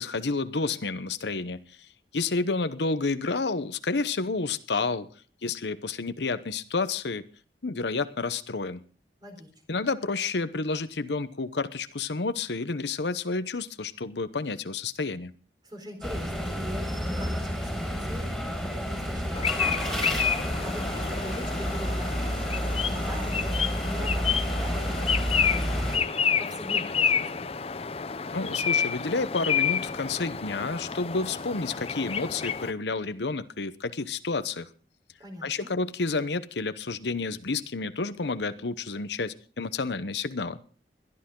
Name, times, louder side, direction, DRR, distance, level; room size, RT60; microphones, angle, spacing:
voice 1, 0.0-1.6 2.1-5.1 5.4-7.3 7.6-8.8 9.7-15.3 28.3-34.7 35.4-40.6, left 3 dB, 80° left, 12 dB, 0.9 m, -30 dB
voice 2, 9.2-9.8 15.6-18.3 18.6-27.5 35.2-35.7, equal, 25° right, 4 dB, 4.1 m, -42 dB
sound 1, 16.0-26.0, equal, ahead, 5.1 m, -30 dB
sound 2, 19.3-32.7, left 6 dB, 35° left, 0.6 m, -29 dB
21.5 x 13.0 x 3.8 m, 0.39 s
head